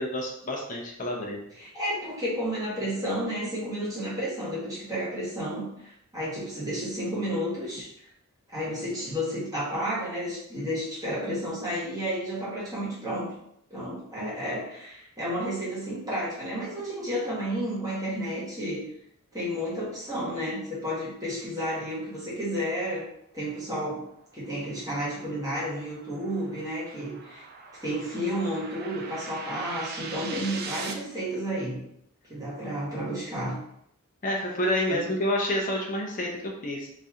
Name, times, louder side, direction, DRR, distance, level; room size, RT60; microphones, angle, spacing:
voice 1, 0.0-1.4 34.2-36.9, left 1 dB, 35° left, -1 dB, 0.7 m, -28 dB
voice 2, 1.6-7.9 8.5-13.3 13.7-18.8 19.3-23.1 23.3-24.0 24.3-27.5 27.8-31.8 32.3-33.6 34.9-35.1, equal, 15° right, -8 dB, 1.3 m, -31 dB
sound 1, 24.1-30.9, right 4 dB, 45° right, 0.4 m, -42 dB
3.1 x 2.7 x 3.6 m, 0.76 s
head